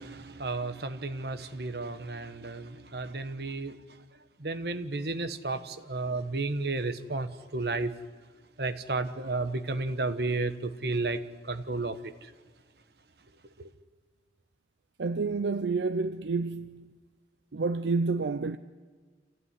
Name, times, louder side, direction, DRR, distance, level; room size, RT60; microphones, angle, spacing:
voice 1, 0.0-3.8 4.4-7.9 8.6-12.3 13.6-13.7, right 3 dB, 65° right, 1.2 m, -33 dB
voice 2, 15.0-16.9 17.5-18.6, right 4 dB, 85° right, 0.6 m, -29 dB
27.0 x 15.5 x 9.8 m
head